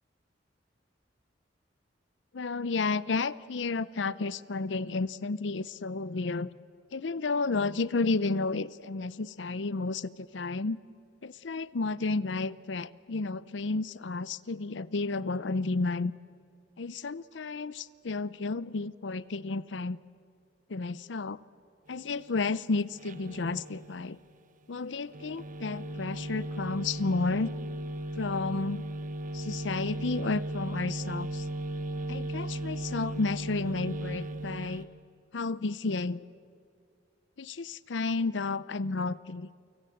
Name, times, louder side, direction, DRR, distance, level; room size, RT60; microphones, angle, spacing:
voice 1, 2.3-6.5 6.9-10.8 11.2-16.1 16.8-20.0 20.7-21.4 21.9-24.2 24.7-27.5 28.2-28.8 29.3-31.5 32.1-34.9 35.3-36.2 37.4-39.5, left 3 dB, 75° left, 18 dB, 0.6 m, -32 dB
sound 1, 22.9-24.1 25.1-34.8, right 1 dB, 45° right, 1.3 m, -36 dB
29.5 x 25.0 x 7.9 m, 2.3 s
head